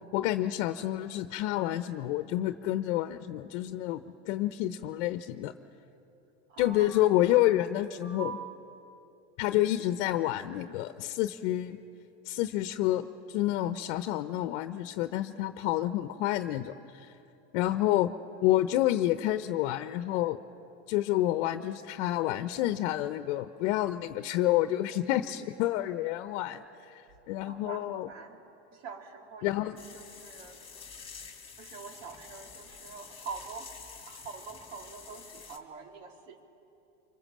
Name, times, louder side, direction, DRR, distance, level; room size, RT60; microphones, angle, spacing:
voice 1, 0.1-5.5 6.6-8.3 9.4-11.8 12.2-17.1 17.5-18.1 18.4-20.4 20.9-28.1 29.4-29.8, left 14 dB, 65° left, 10 dB, 0.9 m, -29 dB
voice 2, 6.5-7.1 7.5-7.6 8.0-8.5 27.5-28.4 28.7-29.6 29.9-30.6 31.6-33.7 34.1-36.4, right 5 dB, 80° right, 3 dB, 3.4 m, -44 dB
sound 1, 29.8-35.6, left 5 dB, 15° left, 2.4 m, -48 dB
25.5 x 23.5 x 7.5 m, 2.9 s
supercardioid pair, 135°, 37 cm